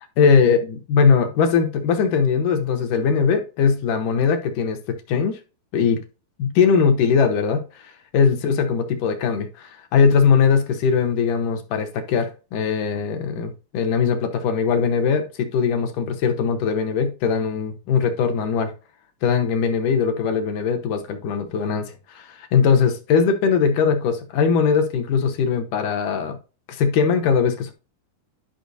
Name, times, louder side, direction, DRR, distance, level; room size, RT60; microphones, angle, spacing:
voice 1, 0.2-5.4 5.7-6.0 6.4-18.7 19.2-26.4 26.7-27.7, left 6 dB, 70° left, 2.3 m, -20 dB
11.5 x 5.6 x 2.7 m
omnidirectional pair, 4.3 m